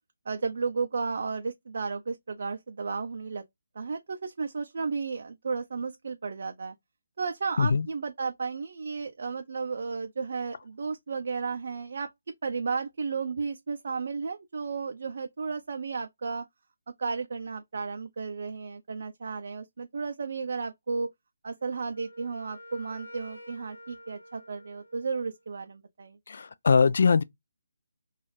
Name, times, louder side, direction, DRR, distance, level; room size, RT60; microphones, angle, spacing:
voice 1, 0.3-3.4 3.8-6.7 7.2-12.1 12.4-16.4 17.0-21.1 21.4-26.2, right 4 dB, 60° right, 0.4 m, -33 dB
Wind instrument woodwind instrument, 21.6-25.5, left 1 dB, 90° left, 0.8 m, -49 dB
voice 2, 26.3-27.2, left 5 dB, 60° left, 0.3 m, -22 dB
2.5 x 2.3 x 3.1 m
figure-of-eight pair, 155°, 0 cm